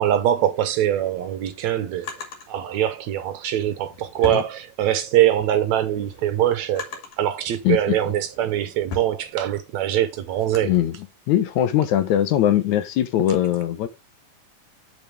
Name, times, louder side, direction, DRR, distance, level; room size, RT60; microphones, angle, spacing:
voice 1, 0.0-10.7, right 11 dB, 70° right, 1.9 m, -23 dB
Drawer open or close, 1.0-2.5 3.5-5.2 5.6-7.3 7.9-10.8, left 6 dB, 90° left, 3.9 m, -39 dB
voice 2, 7.6-8.0 10.6-11.0 11.3-13.9, left 11 dB, 70° left, 2.2 m, -21 dB
8.5 x 6.6 x 3.3 m
omnidirectional pair, 3.6 m